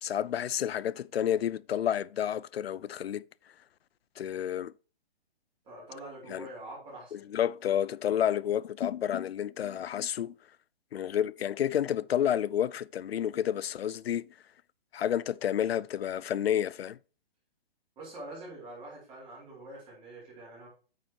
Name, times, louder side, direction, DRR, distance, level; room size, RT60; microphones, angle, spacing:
voice 1, 0.0-3.2 4.2-4.7 6.3-6.5 7.1-10.3 10.9-14.3 14.9-17.0, left 10 dB, 90° left, 0.5 m, -30 dB
voice 2, 5.6-7.4 18.0-20.7, right 1 dB, 20° right, 4.6 m, -45 dB
8.9 x 6.6 x 2.9 m
hypercardioid pair, 150°, 30 cm